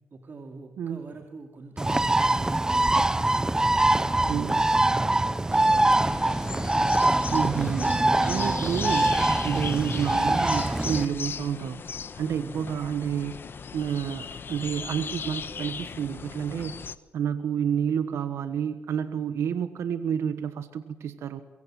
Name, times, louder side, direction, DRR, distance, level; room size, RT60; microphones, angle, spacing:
voice 1, 0.1-6.1 12.4-12.8, right 3 dB, 45° right, 4 dB, 2.9 m, -45 dB
Bird, 1.8-11.0, right 2 dB, 15° right, 0.8 m, -23 dB
voice 2, 4.3-4.7 7.3-9.1 9.4-11.8 12.2-13.4 13.7-16.8 17.1-21.4, right 8 dB, 80° right, 10 dB, 1.3 m, -29 dB
sound 1, 5.5-16.9, left 6 dB, 50° left, 1.1 m, -38 dB
23.5 x 23.5 x 7.7 m, 1.1 s
cardioid pair, 75°, 5 cm